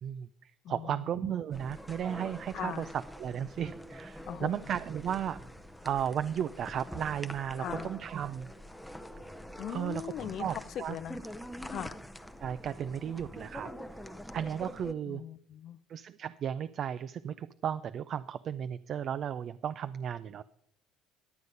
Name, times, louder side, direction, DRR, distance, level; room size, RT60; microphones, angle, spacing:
voice 1, 0.0-5.4 5.8-8.5 9.7-10.0 10.4-11.0 12.4-13.7 14.3-15.2 15.9-20.4, right 9 dB, 50° right, 12 dB, 0.4 m, -35 dB
voice 2, 0.6-1.3 2.5-2.9 4.3-4.7 7.6-7.9 9.6-11.2 11.7-12.0 15.1-15.8, left 10 dB, 55° left, 17 dB, 0.5 m, -40 dB
sound 1, 1.5-14.9, equal, ahead, 0.6 m, -45 dB
11.5 x 8.0 x 5.3 m, 0.66 s
cardioid pair, 115°, 0 cm